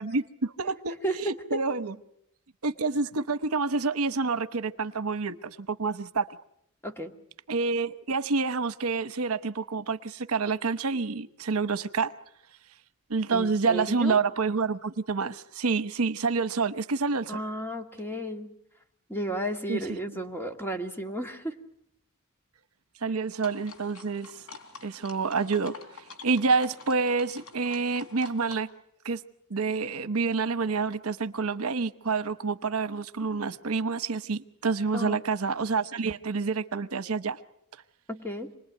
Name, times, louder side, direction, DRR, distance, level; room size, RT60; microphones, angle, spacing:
voice 1, 0.0-1.9 2.6-6.3 7.5-12.1 13.1-17.4 19.7-19.8 23.0-24.3 24.8-25.7 26.2-28.7 29.0-29.2 29.5-37.4, right 4 dB, 80° right, 12 dB, 1.0 m, -28 dB
voice 2, 1.0-1.4 6.8-7.1 13.3-14.2 17.3-18.5 19.1-21.6 34.9-35.2 38.1-38.5, right 1 dB, 10° left, 5 dB, 1.9 m, -33 dB
sound 1, 23.4-28.6, left 4 dB, 75° left, 3.9 m, -48 dB
27.5 x 20.5 x 9.2 m, 0.75 s
head